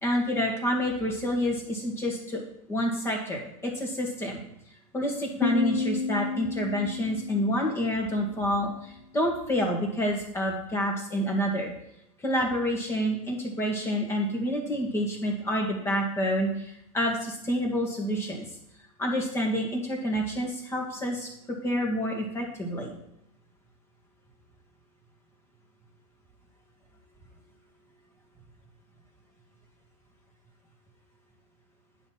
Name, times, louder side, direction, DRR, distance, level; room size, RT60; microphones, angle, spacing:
voice 1, 0.0-2.4 2.7-4.4 4.9-11.7 12.2-18.5 19.0-22.9, equal, 15° left, 0 dB, 1.9 m, -28 dB
Piano, 5.4-8.8, left 5 dB, 80° left, 0.7 m, -32 dB
9.6 x 4.2 x 5.8 m, 0.79 s
supercardioid pair, 140°, 20 cm